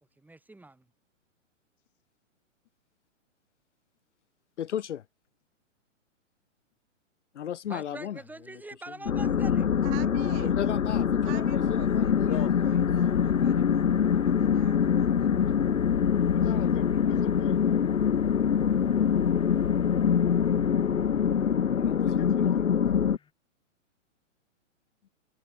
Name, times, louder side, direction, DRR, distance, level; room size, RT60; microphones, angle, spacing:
voice 1, 0.2-0.9 7.7-9.8, right 2 dB, 5° right, 5.2 m, -44 dB
voice 2, 4.6-5.0 7.3-8.2 10.6-12.3 12.6-12.7 21.6-22.4, left 10 dB, 65° left, 1.6 m, -35 dB
sound 1, 9.1-23.2, left 7 dB, 90° left, 0.9 m, -24 dB
voice 3, 9.8-10.6 11.2-15.9, right 38 dB, 35° right, 2.5 m, -48 dB
sound 2, 11.4-23.3, left 7 dB, 15° left, 3.6 m, -59 dB
voice 4, 16.3-17.8 22.2-23.0, left 19 dB, 40° left, 3.9 m, -42 dB
hypercardioid pair, 125°, 38 cm